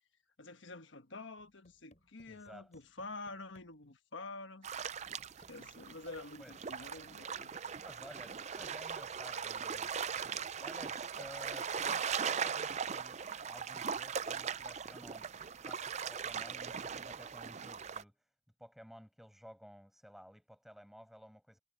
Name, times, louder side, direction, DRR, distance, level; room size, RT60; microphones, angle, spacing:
voice 1, 0.4-4.7 5.5-7.5, left 3 dB, 70° left, 1.3 m, -48 dB
sound 1, 1.4-3.9 5.4-5.8 7.0-7.3 8.6-8.9 10.2-10.5 11.8-12.1 13.0-13.1 13.6-13.9 14.7-14.8 15.2-15.5 16.8-17.2, left 1 dB, 35° left, 7.9 m, -67 dB
voice 2, 2.3-2.8 6.4-6.7 7.8-18.3 18.6-21.6, equal, ahead, 6.7 m, -55 dB
sound 2, 4.6-18.0, right 7 dB, 35° right, 0.5 m, -39 dB
head